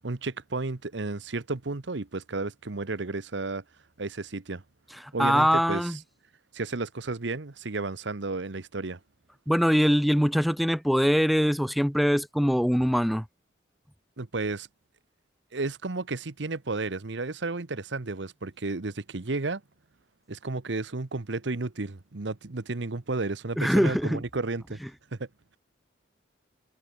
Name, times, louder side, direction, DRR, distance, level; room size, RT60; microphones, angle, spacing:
voice 1, 0.0-3.6 4.0-4.6 5.1-5.8 6.5-9.0 14.2-14.7 15.5-19.6 20.3-24.8 25.1-25.3, right 3 dB, 80° right, 1.0 m, -32 dB
voice 2, 5.0-6.0 9.5-13.2 23.6-24.2, equal, ahead, 0.8 m, -23 dB
head